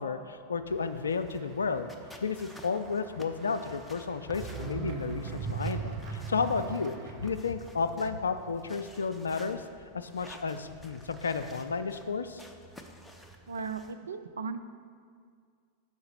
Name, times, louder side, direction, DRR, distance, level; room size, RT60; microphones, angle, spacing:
voice 1, 0.0-1.9 2.2-6.9 7.2-9.6 9.9-12.4, left 5 dB, 70° left, 11 dB, 0.3 m, -32 dB
Run / Walk footsteps / Bell, 0.7-7.4, right 4 dB, 45° right, 0.8 m, -54 dB
sound 1, 1.1-13.9, equal, 5° left, 0.5 m, -53 dB
sound 2, 4.2-9.0 9.3-9.4, right 6 dB, 10° right, 1.1 m, -39 dB
voice 2, 13.5-14.6, right 5 dB, 70° right, 10 dB, 0.3 m, -36 dB
6.3 x 4.7 x 5.5 m, 2.1 s
figure-of-eight pair, 90°, 0 cm